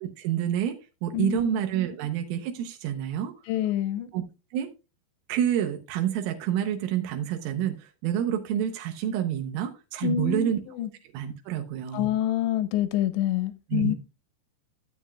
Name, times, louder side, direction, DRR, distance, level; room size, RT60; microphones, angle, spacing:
voice 1, 0.0-3.3 4.1-4.2 4.5-4.7 5.3-10.6 11.1-12.1 13.7-14.0, right 10 dB, 85° right, 3.4 m, -28 dB
voice 2, 1.1-1.5 3.5-4.1 10.0-10.5 10.8-10.9 11.9-14.0, left 11 dB, 85° left, 2.6 m, -26 dB
13.0 x 7.4 x 2.3 m
omnidirectional pair, 5.6 m